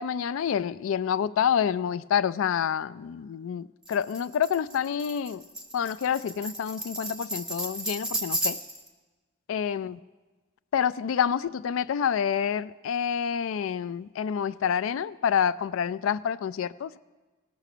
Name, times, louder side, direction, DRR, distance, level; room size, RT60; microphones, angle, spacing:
voice 1, 0.0-5.4 5.7-8.6 9.5-10.0 10.7-17.0, left 8 dB, 85° left, 17 dB, 0.3 m, -28 dB
Tambourine, 3.9-8.9, right 1 dB, 5° right, 0.7 m, -34 dB
17.0 x 6.1 x 6.6 m, 1.3 s
head